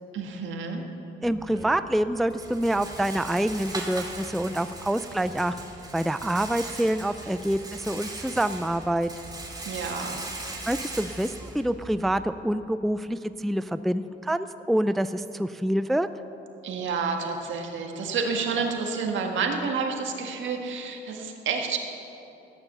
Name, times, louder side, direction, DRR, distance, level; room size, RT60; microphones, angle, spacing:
voice 1, 0.1-0.8 9.7-10.2 16.6-21.8, right 5 dB, 75° right, 3 dB, 1.8 m, -29 dB
voice 2, 1.2-9.1 10.7-16.1, right 1 dB, ahead, 12 dB, 0.3 m, -27 dB
Rattle, 1.2-12.3, right 2 dB, 20° right, 2.3 m, -39 dB
13.5 x 9.7 x 6.9 m, 2.9 s
cardioid pair, 90°, 20 cm